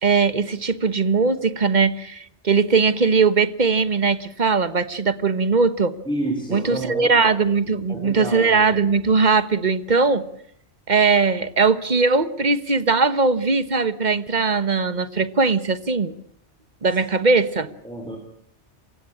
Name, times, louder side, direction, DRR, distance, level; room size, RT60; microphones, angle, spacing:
voice 1, 0.0-5.9 6.5-10.2 10.9-16.1 16.8-17.7, right 4 dB, 40° right, 13 dB, 1.3 m, -20 dB
voice 2, 6.1-7.1 7.9-8.6 17.8-18.2, right 1 dB, 5° left, 3 dB, 3.8 m, -29 dB
28.5 x 16.0 x 8.7 m, 0.67 s
omnidirectional pair, 1.2 m